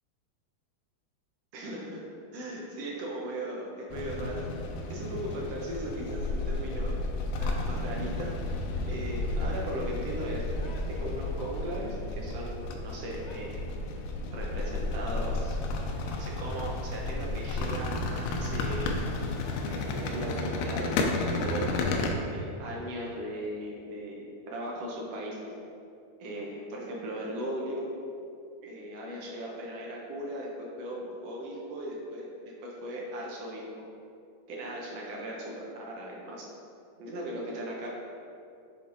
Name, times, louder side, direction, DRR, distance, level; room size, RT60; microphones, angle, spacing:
voice 1, 1.5-2.0 2.3-4.5 4.9-7.0 7.4-8.3 8.8-13.7 14.3-15.6 16.1-19.0 19.7-21.0 21.4-25.5 26.2-27.9 28.6-33.6 34.5-36.5 37.0-37.9, right 1 dB, 75° right, -3 dB, 1.5 m, -38 dB
sound 1, 3.9-22.1, left 2 dB, 85° left, 2.2 m, -32 dB
8.1 x 3.5 x 3.7 m, 2.6 s
omnidirectional pair, 3.6 m